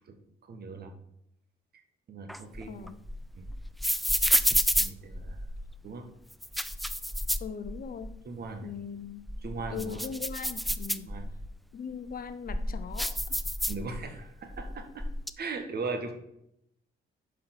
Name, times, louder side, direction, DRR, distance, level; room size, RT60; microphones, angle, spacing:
voice 1, 0.4-0.9 1.7-1.8 2.1-2.9 3.3-3.5 4.8-5.4 5.8-6.1 8.2-8.7 9.4-10.0 11.0-11.3 13.7-15.0 15.4-16.1, right 4 dB, 55° right, 6 dB, 1.5 m, -38 dB
sound 1, 2.3-5.7 6.3-8.1 8.5-8.6 9.1-11.5 12.1-14.2 14.5-15.3, equal, ahead, 0.4 m, -30 dB
voice 2, 2.7-3.0 7.4-8.2 8.6-9.3 9.7-11.1 11.7-13.4, left 6 dB, 45° left, 12 dB, 0.7 m, -40 dB
6.8 x 5.1 x 5.9 m, 0.77 s
cardioid pair, 90°, 20 cm